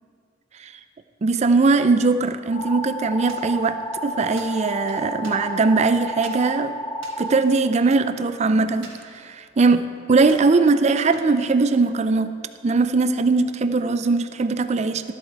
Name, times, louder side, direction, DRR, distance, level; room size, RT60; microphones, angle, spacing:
voice 1, 1.2-6.7 7.2-12.3 12.6-15.1, right 3 dB, 35° right, 11 dB, 0.4 m, -20 dB
sound 1, 2.5-7.3, equal, 60° left, 2.2 m, -31 dB
sound 2, 3.3-3.9 4.4-5.8 6.2-6.5 6.9-8.3 8.8-9.8 10.2-10.6 11.1-12.2, right 3 dB, 75° right, 1.5 m, -46 dB
12.5 x 8.0 x 4.5 m, 2.3 s
head